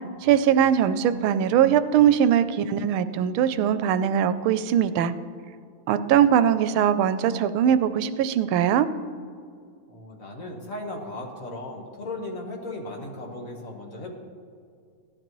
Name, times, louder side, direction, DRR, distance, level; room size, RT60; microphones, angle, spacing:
voice 1, 0.2-5.1 5.9-8.9, right 9 dB, 85° right, 12 dB, 1.4 m, -21 dB
voice 2, 9.9-14.1, left 2 dB, 45° left, 0 dB, 1.6 m, -36 dB
17.0 x 12.0 x 3.1 m, 2.3 s
omnidirectional pair, 2.2 m